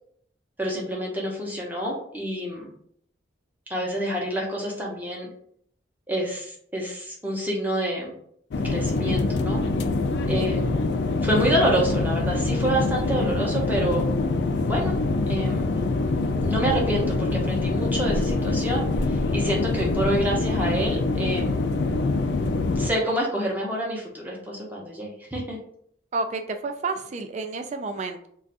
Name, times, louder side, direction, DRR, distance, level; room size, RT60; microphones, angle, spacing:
voice 1, 0.6-2.7 3.7-5.3 6.1-8.1 8.6-9.6 10.3-10.8 11.2-14.1 14.7-14.9 15.3-15.7 16.4-21.6 22.8-25.6, right 1 dB, 10° right, -2 dB, 0.7 m, -27 dB
sound 1, 8.5-22.9, left 3 dB, 60° left, 0.3 m, -24 dB
voice 2, 26.1-28.3, right 3 dB, 35° right, 6 dB, 0.3 m, -30 dB
2.5 x 2.3 x 3.9 m, 0.66 s
head